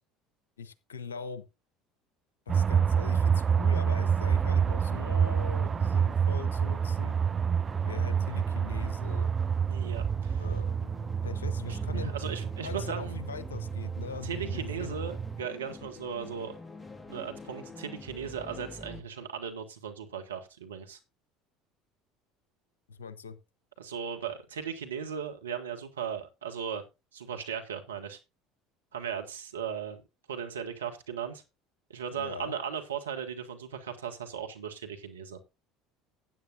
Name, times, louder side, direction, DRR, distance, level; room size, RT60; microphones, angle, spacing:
voice 1, 0.6-1.4 2.5-7.2 7.8-9.3 10.3-10.9 11.2-12.1 12.6-14.9 22.9-23.4 32.1-32.5, left 6 dB, 85° left, 0.9 m, -41 dB
sound 1, 2.5-15.4, right 7 dB, 30° right, 0.4 m, -28 dB
sound 2, 3.9-19.0, left 3 dB, 15° left, 1.6 m, -49 dB
voice 2, 9.7-10.5 11.7-13.2 14.2-16.6 17.1-21.0 23.8-26.8 27.1-28.2 28.9-30.0 30.3-31.4 31.9-35.4, right 7 dB, 85° right, 1.7 m, -37 dB
15.5 x 9.0 x 2.6 m
hypercardioid pair, 70°, 0 cm